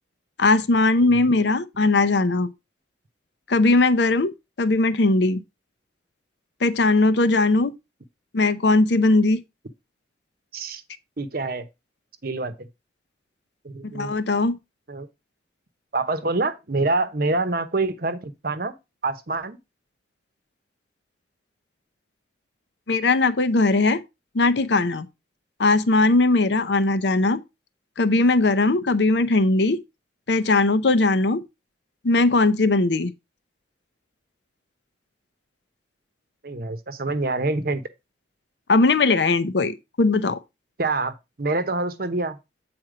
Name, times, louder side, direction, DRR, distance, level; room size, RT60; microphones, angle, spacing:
voice 1, 0.4-2.5 3.5-4.3 4.6-5.4 6.6-7.7 8.3-9.4 13.9-14.5 22.9-24.0 24.3-25.1 25.6-27.4 28.0-29.8 30.3-31.4 32.0-33.1 38.7-40.4, left 3 dB, 65° left, 0.7 m, -19 dB
voice 2, 11.2-11.6 12.2-12.7 13.6-14.1 14.9-15.1 15.9-18.7 19.0-19.6 36.4-37.8 40.8-42.4, right 3 dB, 50° right, 0.8 m, -26 dB
7.9 x 4.3 x 4.9 m
head